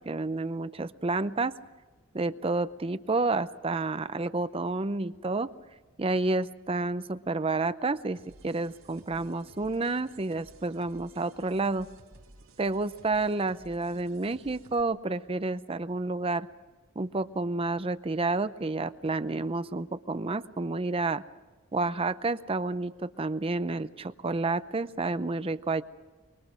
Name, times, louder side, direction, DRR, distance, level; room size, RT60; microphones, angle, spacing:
voice 1, 0.1-1.6 2.1-5.5 6.0-11.9 12.6-16.5 17.0-21.2 21.7-25.8, right 3 dB, 30° right, 13 dB, 0.6 m, -30 dB
sound 1, 8.1-14.8, right 2 dB, 90° right, 3.4 m, -56 dB
24.0 x 23.5 x 6.2 m, 1.3 s
head